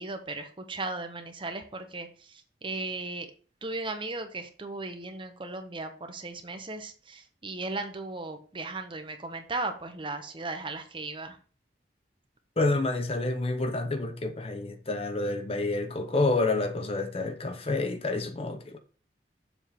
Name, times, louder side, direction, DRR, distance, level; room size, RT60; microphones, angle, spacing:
voice 1, 0.0-3.3 3.6-11.4, right 3 dB, 30° right, 0.9 m, -36 dB
voice 2, 12.6-18.8, left 2 dB, 35° left, 0.7 m, -28 dB
7.1 x 3.5 x 5.8 m
head